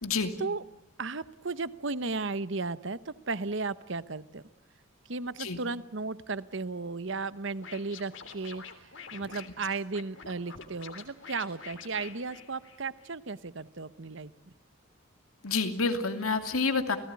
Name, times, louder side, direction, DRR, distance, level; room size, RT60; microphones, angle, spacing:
voice 1, 0.0-0.3 5.4-5.6 15.4-17.0, left 4 dB, 80° left, 7 dB, 2.8 m, -28 dB
voice 2, 1.0-4.4 5.1-14.3, right 3 dB, 60° right, 15 dB, 1.0 m, -35 dB
Scratching (performance technique), 7.6-13.1, left 6 dB, 60° left, 3.2 m, -47 dB
29.5 x 18.5 x 9.7 m, 0.82 s
head